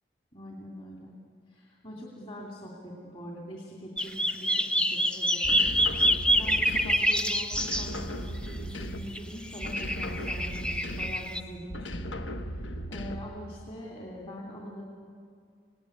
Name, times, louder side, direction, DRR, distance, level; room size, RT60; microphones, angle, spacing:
voice 1, 0.3-1.1 1.5-5.6 6.3-12.2 12.4-14.8, equal, 30° left, -3 dB, 2.5 m, -43 dB
sound 1, 4.0-8.0 9.1-9.2 9.5-11.4, equal, 5° left, 0.7 m, -26 dB
sound 2, 5.4-7.2 7.5-9.3 9.6-11.3 11.7-13.4, equal, 85° left, 1.4 m, -37 dB
24.5 x 18.0 x 9.8 m, 2.2 s
head